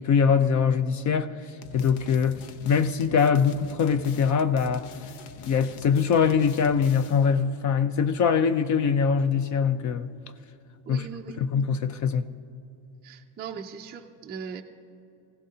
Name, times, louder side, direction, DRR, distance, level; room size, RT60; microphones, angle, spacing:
voice 1, 0.0-1.3 1.7-2.4 2.6-4.9 5.5-10.1 10.9-11.0 11.4-12.2, left 6 dB, 40° left, 0.6 m, -23 dB
sound 1, 1.6-7.4, left 6 dB, 80° left, 1.0 m, -45 dB
voice 2, 10.9-11.4 13.0-14.6, right 6 dB, 20° right, 0.4 m, -39 dB
25.0 x 16.5 x 2.8 m
cardioid pair, 160°, 48 cm